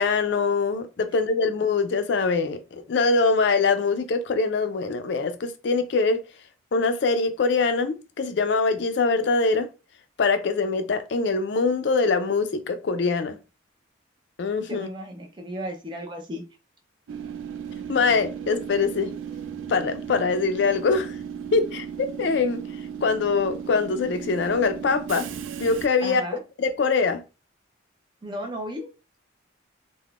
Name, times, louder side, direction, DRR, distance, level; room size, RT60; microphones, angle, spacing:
voice 1, 0.0-6.2 6.7-9.7 10.2-13.4 14.4-14.9 17.9-19.1 19.7-21.1 21.5-22.6 23.0-25.3 25.6-26.2 26.6-27.2, left 4 dB, 60° left, 0.4 m, -23 dB
voice 2, 14.7-16.4 26.0-26.4 28.2-28.9, equal, 25° right, 0.5 m, -34 dB
Train / Subway metro underground, 17.1-25.9, right 7 dB, 75° right, 0.3 m, -36 dB
3.5 x 2.1 x 2.3 m
head